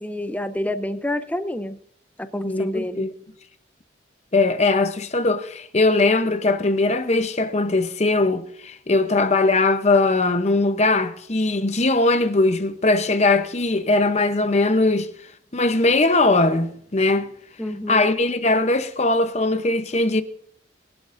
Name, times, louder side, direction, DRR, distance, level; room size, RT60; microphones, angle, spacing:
voice 1, 0.0-1.8 2.2-3.1 17.6-18.0, left 1 dB, 10° left, 0.6 m, -28 dB
voice 2, 2.4-3.1 4.3-15.1 15.5-17.3 17.9-20.2, left 2 dB, 35° left, 0.8 m, -20 dB
22.0 x 11.5 x 2.6 m
head